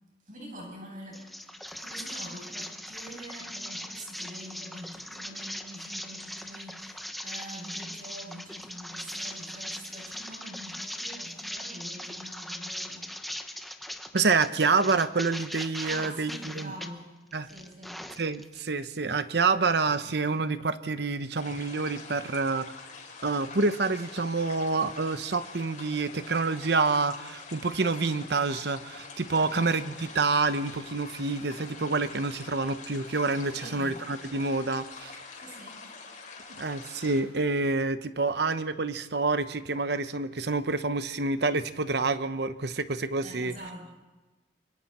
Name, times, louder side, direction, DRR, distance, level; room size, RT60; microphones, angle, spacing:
voice 1, 0.3-1.3 1.8-13.1 15.8-17.1 17.4-18.0 29.3-29.6 33.5-34.0 35.4-35.9 43.2-43.9, right 1 dB, 50° right, 0 dB, 7.3 m, -45 dB
sound 1, 1.1-16.9 17.3-18.6, equal, ahead, 1.1 m, -40 dB
voice 2, 14.1-16.7 17.3-17.5 18.2-22.7 23.2-35.1 36.6-43.5, right 3 dB, 65° right, 12 dB, 0.9 m, -27 dB
sound 2, 21.4-37.2, left 4 dB, 45° left, 4.8 m, -45 dB
25.5 x 24.0 x 4.3 m, 1.2 s
head